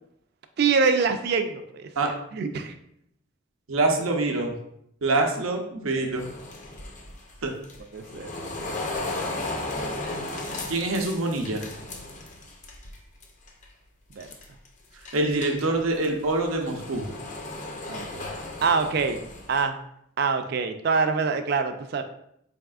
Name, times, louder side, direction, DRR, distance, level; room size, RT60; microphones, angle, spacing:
voice 1, 0.6-2.7 7.9-8.3 14.2-14.3 17.9-18.3 18.6-19.2 19.5-19.8 20.2-22.0, right 5 dB, 50° right, 8 dB, 0.3 m, -25 dB
voice 2, 3.7-4.5 5.0-6.3 7.4-7.5 10.7-11.6 15.1-17.1, right 2 dB, 90° right, 3 dB, 0.6 m, -25 dB
sound 1, 6.1-13.0 13.2-13.6 14.1-14.7 15.0-19.6, left 2 dB, 35° left, 0.4 m, -35 dB
4.1 x 3.5 x 2.3 m, 0.73 s
head